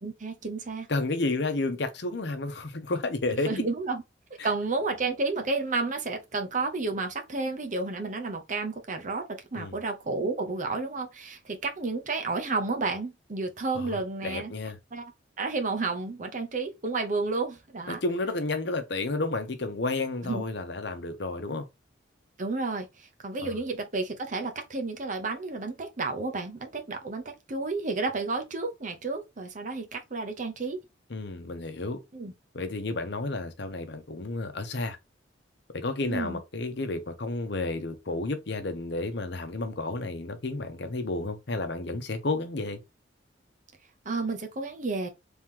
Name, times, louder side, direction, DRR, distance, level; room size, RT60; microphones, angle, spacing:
voice 1, 0.0-0.9 3.4-4.0 4.4-14.5 14.9-15.1 15.4-18.0 20.2-20.4 22.4-30.8 32.1-32.3 36.1-36.4 44.0-45.1, right 3 dB, 45° right, 0.8 m, -31 dB
voice 2, 0.9-3.6 9.6-9.8 13.7-14.8 17.9-21.6 23.4-23.5 31.1-32.0 32.5-35.0 35.7-42.8, left 2 dB, 65° left, 0.8 m, -31 dB
3.5 x 3.0 x 3.6 m
head